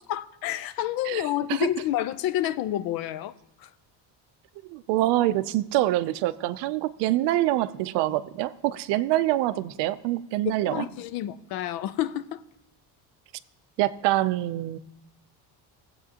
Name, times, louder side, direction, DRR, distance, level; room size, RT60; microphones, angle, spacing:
voice 1, 0.1-3.3 3.6-3.7 10.6-12.4, left 13 dB, 55° left, 0.5 m, -29 dB
voice 2, 4.7-10.8 13.8-14.8, right 15 dB, 70° right, 0.6 m, -25 dB
20.0 x 8.2 x 2.8 m
cardioid pair, 175°, 44 cm